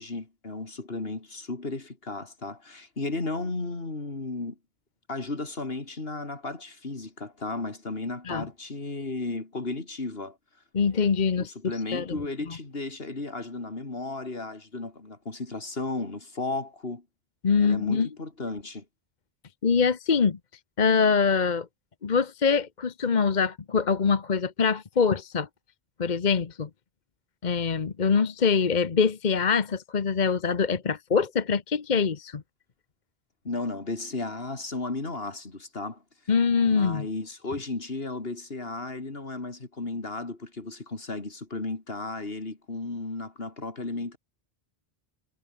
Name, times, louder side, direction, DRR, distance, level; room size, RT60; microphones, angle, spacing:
voice 1, 0.0-4.6 5.1-10.4 11.4-17.0 17.6-18.8 33.4-36.0 36.6-44.2, left 3 dB, 70° left, 3.3 m, -34 dB
voice 2, 10.7-11.5 11.9-12.0 17.4-18.1 19.6-20.4 20.8-21.7 22.0-25.5 26.0-26.7 27.4-32.4 36.3-37.1, left 5 dB, 50° left, 1.1 m, -24 dB
omnidirectional pair, 1.0 m